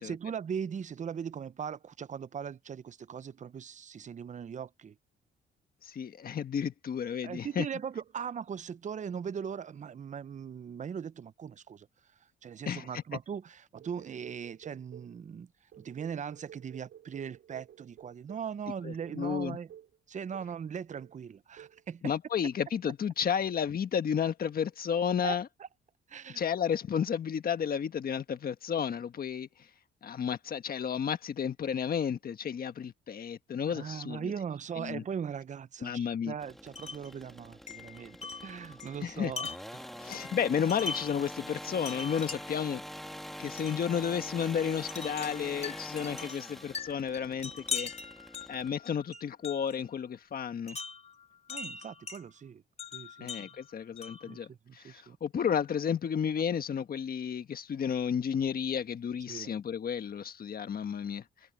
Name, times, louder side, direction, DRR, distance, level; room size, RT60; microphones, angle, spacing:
voice 1, 0.0-5.0 7.2-11.9 12.4-15.5 15.8-19.7 20.1-22.0 25.2-25.7 26.1-26.4 33.7-39.5 39.7-39.9 51.5-52.6 52.9-53.5 54.2-55.2 59.3-59.5, right 7 dB, 40° right, 0.7 m, -39 dB
voice 2, 5.8-7.7 12.7-13.0 18.8-19.6 22.0-25.4 26.3-29.7 30.0-34.3 34.8-35.0 35.8-36.3 39.0-39.3 40.0-42.8 43.4-47.9 48.5-50.8 53.2-61.2, left 7 dB, 50° left, 1.4 m, -32 dB
sound 1, 13.8-15.2 15.7-18.5 19.0-19.3 19.7-20.0 20.3-20.6 20.9-21.2 21.6-21.8, right 10 dB, 70° right, 2.7 m, -53 dB
sound 2, 36.4-48.7, equal, ahead, 1.7 m, -45 dB
Wind chime, 36.7-37.1 37.7-41.2 41.8-42.7 43.6-43.8 44.9-49.8 50.7-52.2 52.8-54.3, left 5 dB, 35° left, 3.6 m, -41 dB
cardioid pair, 90°, 20 cm